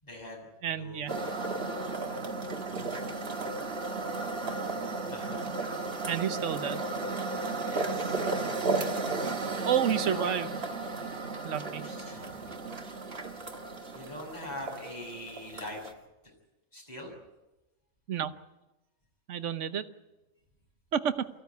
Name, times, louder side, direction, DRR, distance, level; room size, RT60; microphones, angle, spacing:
voice 1, 0.0-1.3 5.1-5.4 7.6-8.2 8.8-9.0 9.9-10.3 11.5-12.5 13.9-15.8 16.7-17.1, left 1 dB, 30° left, 0 dB, 6.7 m, -43 dB
voice 2, 0.6-1.2 6.1-6.8 9.6-10.5 11.4-11.9 18.1-18.3 19.3-19.9 20.9-21.3, right 9 dB, 60° right, 11 dB, 1.3 m, -30 dB
sound 1, 1.1-15.9, right 3 dB, 45° right, 1.9 m, -34 dB
23.5 x 15.5 x 9.4 m, 1.0 s
omnidirectional pair, 1.4 m